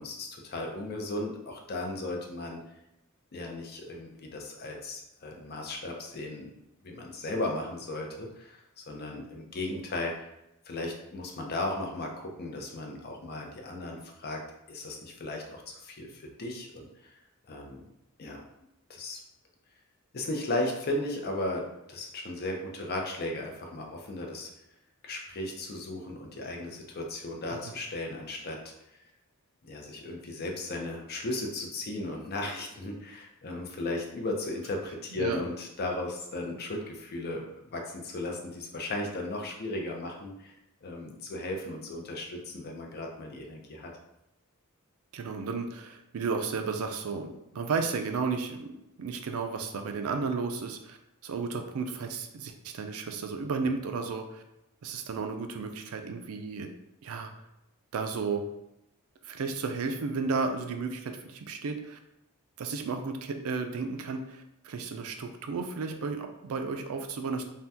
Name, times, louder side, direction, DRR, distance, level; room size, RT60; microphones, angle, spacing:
voice 1, 0.0-2.6 3.3-6.5 6.8-10.3 10.7-14.4 14.7-17.1 17.5-17.8 18.2-18.4 18.9-19.2 20.1-24.5 25.0-28.7 29.6-40.5 40.8-43.9, left 2 dB, 50° left, 1 dB, 0.5 m, -36 dB
voice 2, 35.1-35.4 45.1-51.0 51.2-54.4 54.8-56.7 57.0-57.3 57.9-58.4 59.2-62.0 62.6-67.4, right 4 dB, 75° right, 5 dB, 0.4 m, -33 dB
2.7 x 2.2 x 3.4 m, 0.87 s
head